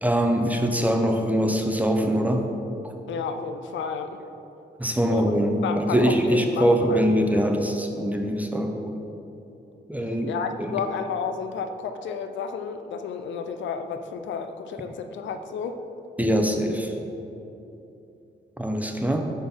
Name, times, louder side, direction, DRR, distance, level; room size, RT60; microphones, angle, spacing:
voice 1, 0.0-2.5 4.8-9.0 9.9-10.3 10.6-10.8 16.2-17.0 18.6-19.2, equal, 10° right, 3 dB, 0.7 m, -23 dB
voice 2, 3.1-4.2 5.0-5.3 5.6-7.1 7.3-7.4 10.3-15.8, left 6 dB, 85° left, 8 dB, 0.4 m, -31 dB
5.1 x 4.1 x 5.9 m, 2.9 s
cardioid pair, 65°, 19 cm